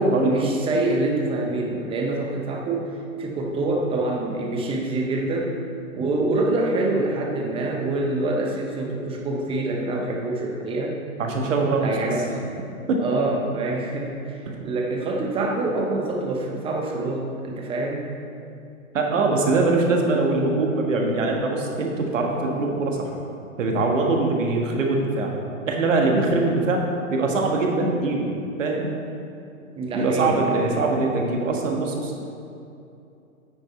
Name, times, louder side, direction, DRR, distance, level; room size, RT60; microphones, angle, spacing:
voice 1, 0.0-5.6 5.9-11.0 11.8-12.5 13.0-18.1 29.8-30.8, right 2 dB, 15° right, 0 dB, 0.9 m, -26 dB
voice 2, 11.2-11.9 12.9-13.0 18.9-23.1 23.6-25.3 25.7-26.8 27.1-28.3 28.6-28.9 29.9-32.1, right 3 dB, 60° right, 1 dB, 1.7 m, -22 dB
9.3 x 6.7 x 4.4 m, 2.7 s
hypercardioid pair, 125°, 42 cm